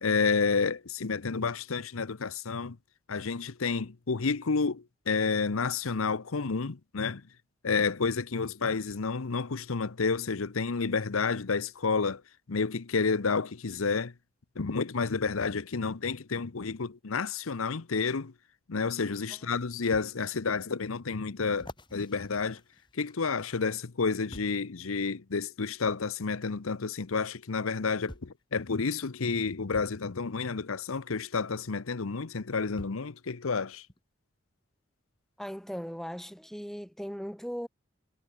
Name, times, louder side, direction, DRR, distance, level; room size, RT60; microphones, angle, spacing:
voice 1, 0.0-2.8 3.1-7.2 7.6-12.2 12.5-14.1 14.6-18.3 18.7-22.6 22.9-33.9, left 4 dB, 90° left, 0.8 m, -30 dB
sound 1, 19.9-20.1 20.7-20.8 21.5-23.4 24.3-24.7 25.8-26.0 27.3-27.4 28.1-28.4 29.7-30.0 31.6-31.7 32.8-33.1 33.9-34.0, left 1 dB, 20° left, 6.9 m, -48 dB
voice 2, 35.4-37.7, equal, ahead, 4.4 m, -38 dB
head